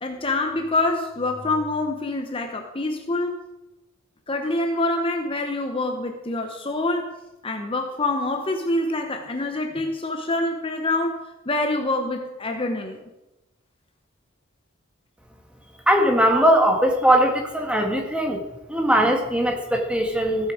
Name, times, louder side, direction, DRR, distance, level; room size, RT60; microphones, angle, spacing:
voice 1, 0.0-3.4 4.3-7.1 7.4-11.2 11.5-13.0, left 2 dB, 25° left, 4 dB, 0.9 m, -26 dB
voice 2, 15.9-18.4 18.7-20.5, equal, 5° right, 3 dB, 1.5 m, -20 dB
15.5 x 8.4 x 4.9 m, 1.0 s
head